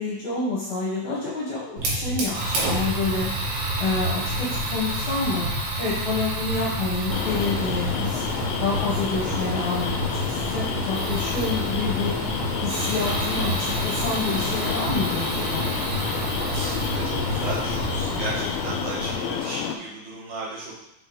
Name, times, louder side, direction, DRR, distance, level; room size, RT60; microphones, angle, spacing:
voice 1, 0.0-3.3 3.8-5.5 5.8-8.2 8.6-12.2 12.6-15.7, left 3 dB, 65° left, -5 dB, 2.1 m, -28 dB
Fire, 1.8-19.4, right 1 dB, 70° right, 2.8 m, -28 dB
sound 1, 7.1-19.8, left 8 dB, 80° left, 2.2 m, -30 dB
voice 2, 16.4-20.8, right 2 dB, 40° right, -6 dB, 0.9 m, -35 dB
6.2 x 5.0 x 3.9 m, 0.86 s
omnidirectional pair, 4.4 m